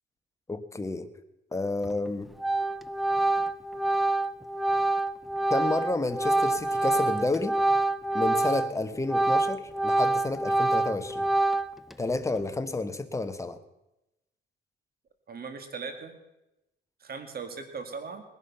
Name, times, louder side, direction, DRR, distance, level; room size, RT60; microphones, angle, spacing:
voice 1, 0.5-1.1 1.5-2.3 5.5-7.6 8.1-11.2 12.0-13.6, left 2 dB, 15° left, 8 dB, 1.3 m, -30 dB
Organ, 1.8-2.1 2.4-8.7 9.0-11.9, right 2 dB, ahead, 0.6 m, -26 dB
voice 2, 15.3-16.2 17.0-18.2, right 5 dB, 50° right, 7 dB, 2.4 m, -38 dB
19.0 x 11.0 x 5.7 m, 0.94 s
cardioid pair, 90°, 20 cm